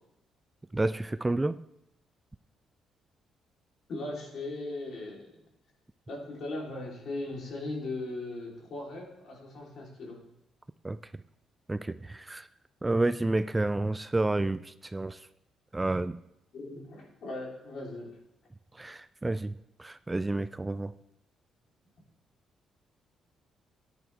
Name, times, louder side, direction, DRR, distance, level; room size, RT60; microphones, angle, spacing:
voice 1, 0.7-1.6 10.8-11.0 11.7-12.5 12.8-15.3 15.7-16.2 18.7-20.9, right 2 dB, 15° right, 14 dB, 0.3 m, -30 dB
voice 2, 3.9-5.3 6.1-10.2 16.5-18.2, left 2 dB, 65° left, -2 dB, 3.6 m, -38 dB
13.5 x 10.0 x 3.5 m, 0.82 s
cardioid pair, 90°, 0 cm